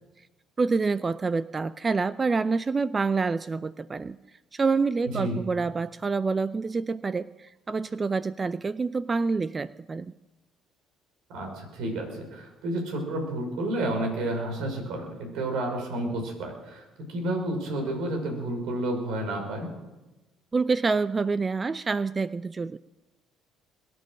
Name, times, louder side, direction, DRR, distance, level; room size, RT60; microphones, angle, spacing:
voice 1, 0.6-4.2 4.5-10.1 20.5-22.8, right 4 dB, 30° right, 16 dB, 0.5 m, -27 dB
voice 2, 5.0-5.4 11.3-19.7, right 1 dB, 75° right, 3 dB, 5.6 m, -31 dB
22.0 x 9.6 x 6.5 m, 1.1 s
supercardioid pair, 75°, 0 cm